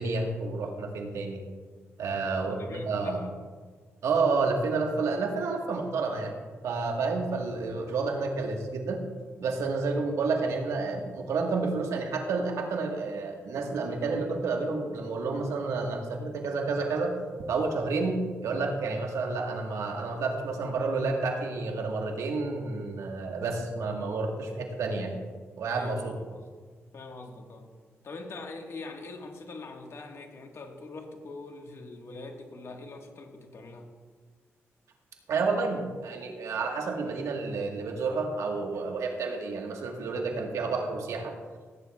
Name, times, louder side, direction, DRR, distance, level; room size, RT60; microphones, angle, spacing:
voice 1, 0.0-1.4 2.0-3.2 4.0-6.3 6.6-9.0 9.4-17.1 17.5-25.2 25.6-26.1 35.3-41.3, right 3 dB, 80° right, 2 dB, 1.4 m, -30 dB
voice 2, 2.0-3.3 25.7-26.0 26.3-26.5 26.9-27.7 28.0-33.9, left 3 dB, 60° left, 3 dB, 1.5 m, -43 dB
15.5 x 9.4 x 2.3 m, 1.5 s
cardioid pair, 75°, 5 cm